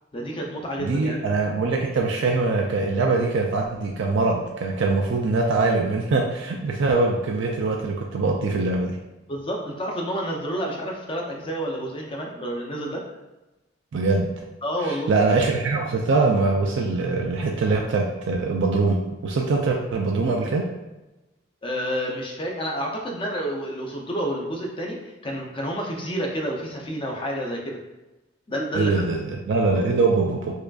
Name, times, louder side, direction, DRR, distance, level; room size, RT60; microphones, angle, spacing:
voice 1, 0.1-1.2 9.3-13.1 14.6-15.1 21.6-27.8 28.5-29.1, equal, 25° left, 0 dB, 0.5 m, -29 dB
voice 2, 0.8-8.9 13.9-14.3 14.8-19.0 19.2-20.6 28.7-30.5, right 3 dB, 70° right, 0 dB, 0.4 m, -23 dB
4.7 x 2.4 x 2.3 m, 1.0 s
head